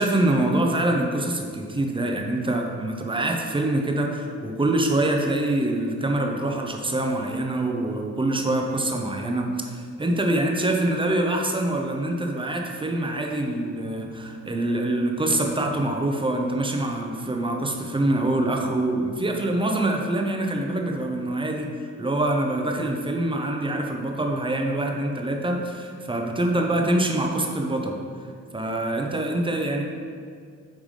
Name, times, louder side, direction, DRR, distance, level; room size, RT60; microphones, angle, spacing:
voice 1, 0.0-21.7 22.0-28.0 28.5-29.8, right 1 dB, 15° right, 2 dB, 1.0 m, -25 dB
9.0 x 3.6 x 5.0 m, 2.2 s
cardioid pair, 95°, 30 cm